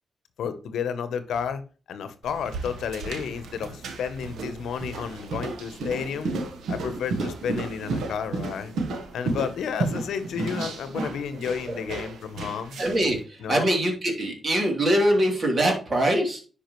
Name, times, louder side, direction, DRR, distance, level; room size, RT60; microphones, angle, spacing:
voice 1, 0.4-1.6 1.9-6.3 6.7-8.7 9.1-12.8 13.4-13.7, left 7 dB, 85° left, 11 dB, 0.8 m, -31 dB
sound 1, 2.2-13.1, right 3 dB, 85° right, 1.2 m, -33 dB
voice 2, 12.8-16.4, right 1 dB, 45° right, 1 dB, 3.0 m, -23 dB
10.5 x 5.0 x 3.1 m, 0.36 s
cardioid pair, 70°, 0 cm